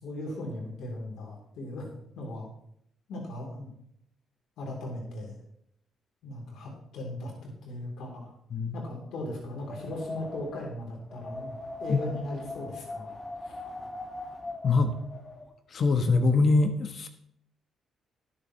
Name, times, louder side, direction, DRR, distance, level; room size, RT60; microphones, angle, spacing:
voice 1, 0.0-1.9 2.1-2.5 3.1-3.7 4.6-5.3 6.2-8.3 8.7-13.2 13.4-13.6, left 1 dB, 75° left, -1 dB, 3.3 m, -38 dB
Wind, 9.5-15.5, left 2 dB, 25° left, 1.7 m, -41 dB
voice 2, 14.6-15.0 15.7-17.1, left 3 dB, 50° left, 7 dB, 1.1 m, -23 dB
19.0 x 7.3 x 3.1 m, 0.73 s
cardioid pair, 90°, 0 cm